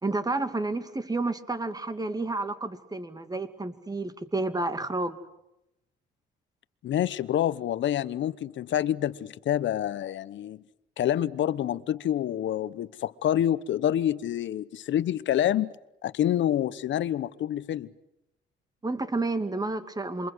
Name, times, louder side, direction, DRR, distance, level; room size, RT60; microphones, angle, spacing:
voice 1, 0.0-5.2 18.8-20.3, right 2 dB, 20° right, 2.5 m, -30 dB
voice 2, 6.8-10.6 11.0-15.7 16.0-17.9, left 11 dB, 70° left, 1.1 m, -27 dB
28.0 x 24.0 x 8.1 m
cardioid pair, 90°, 20 cm